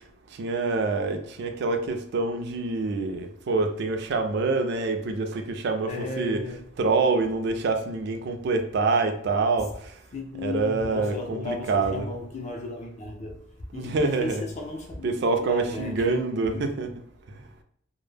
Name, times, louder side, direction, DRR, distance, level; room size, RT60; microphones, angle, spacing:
voice 1, 0.3-6.4 6.8-9.9 10.4-12.1 13.7-14.4 15.0-16.9, right 3 dB, 55° right, 0.3 m, -26 dB
voice 2, 5.9-6.7 10.1-16.6, left 2 dB, 35° left, 0.4 m, -35 dB
2.1 x 2.0 x 3.2 m
head